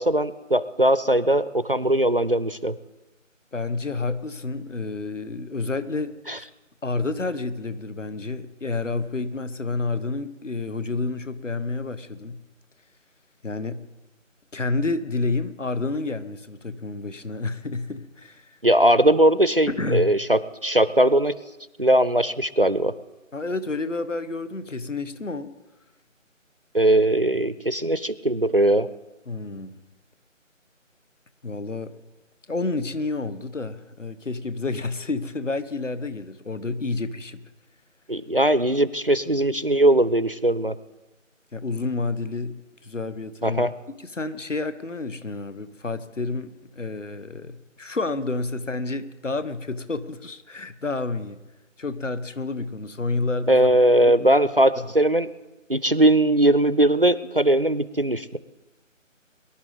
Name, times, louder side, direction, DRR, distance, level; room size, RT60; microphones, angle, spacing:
voice 1, 0.0-2.8 6.3-6.4 18.6-21.4 21.8-22.9 26.7-28.9 38.1-40.8 43.4-43.7 53.5-55.3 55.7-58.4, right 1 dB, 45° right, 16 dB, 0.5 m, -20 dB
voice 2, 3.5-6.5 6.8-12.4 13.4-13.8 14.5-18.6 19.7-20.1 23.3-25.5 29.3-29.8 31.4-31.9 32.5-37.4 41.5-43.6 43.9-51.4 51.8-53.7 54.0-54.3 54.8-54.9, left 3 dB, 70° left, 13 dB, 1.2 m, -29 dB
22.5 x 11.5 x 4.0 m, 1.1 s
figure-of-eight pair, 160°, 39 cm